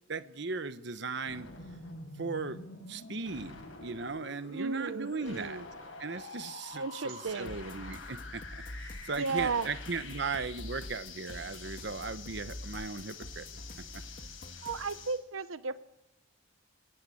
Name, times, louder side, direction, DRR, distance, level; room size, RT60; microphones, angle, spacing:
voice 1, 0.1-1.5 2.2-2.6 2.9-5.6 6.0-13.5 13.8-14.0, right 4 dB, 60° right, 12 dB, 1.1 m, -38 dB
sound 1, 1.3-15.2, left 3 dB, 75° left, 7.3 m, -47 dB
voice 2, 4.5-5.7 6.7-7.6 9.2-9.7 14.6-15.8, right 4 dB, 90° right, 13 dB, 1.0 m, -34 dB
sound 2, 7.4-15.1, left 1 dB, 45° left, 1.9 m, -46 dB
25.5 x 18.0 x 8.5 m, 0.89 s
head